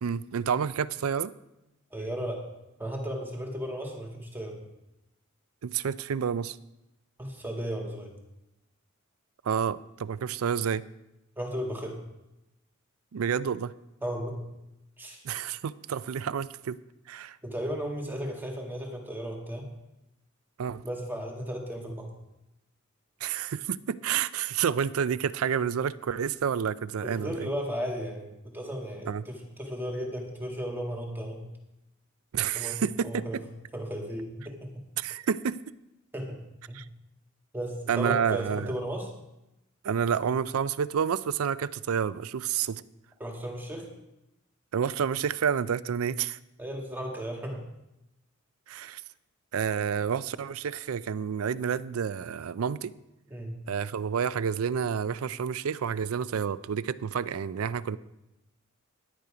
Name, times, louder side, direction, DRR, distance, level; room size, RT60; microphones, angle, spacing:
voice 1, 0.0-1.3 5.6-6.6 9.4-10.8 13.1-13.7 15.2-16.8 17.1-17.4 20.6-20.8 23.2-27.5 29.1-29.2 32.3-33.2 35.0-35.6 36.7-36.8 37.9-38.7 39.8-42.8 44.7-46.4 48.7-49.0 49.5-52.9 53.7-58.0, right 7 dB, 85° right, 17 dB, 0.4 m, -29 dB
voice 2, 1.9-2.4 2.8-4.6 7.2-8.1 11.4-12.0 14.0-14.4 15.0-15.2 17.4-19.6 20.8-22.1 27.0-31.4 32.6-32.8 33.0-33.4 33.7-34.7 36.1-36.4 36.7-36.8 37.5-39.1 43.2-43.9 46.6-47.6 53.3-53.6, equal, 10° right, 1 dB, 1.8 m, -35 dB
10.5 x 9.6 x 5.0 m, 0.92 s
head